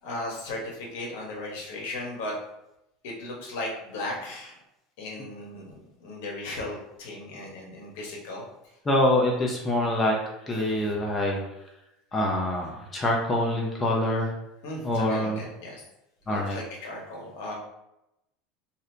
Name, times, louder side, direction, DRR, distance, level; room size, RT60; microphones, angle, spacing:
voice 1, 0.0-2.4 3.0-4.6 5.0-8.7 14.6-15.8 16.3-17.5, left 2 dB, 80° left, -2 dB, 1.0 m, -36 dB
voice 2, 8.9-10.2 10.5-11.4 12.1-14.3 14.8-15.4 16.3-16.6, left 1 dB, 20° left, -1 dB, 0.5 m, -25 dB
2.7 x 2.5 x 3.2 m, 0.87 s
supercardioid pair, 140°, 0 cm